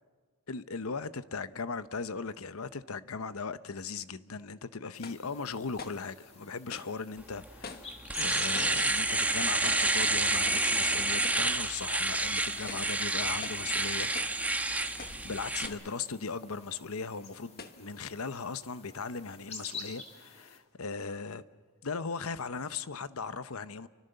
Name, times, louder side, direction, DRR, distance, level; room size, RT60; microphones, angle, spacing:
voice 1, 0.5-7.8 8.2-14.1 14.9-21.4 21.8-23.9, left 4 dB, 75° left, 0.9 m, -38 dB
sound 1, 4.9-20.6, left 4 dB, 30° left, 2.7 m, -49 dB
sound 2, 5.0-5.3 5.8-6.1 6.7-7.0 7.6-8.0 8.5-8.9 9.6-9.9 10.5-10.7 11.2-11.5 12.0-12.1 12.6-13.0 13.4-13.7 14.1-14.4 15.0-15.3 15.6-16.0 16.6-16.7 17.6-17.8, left 4 dB, 45° left, 1.4 m, -45 dB
Domestic sounds home sounds, 7.4-7.5 7.9-15.7, right 2 dB, 5° right, 1.1 m, -29 dB
30.0 x 24.5 x 6.8 m
head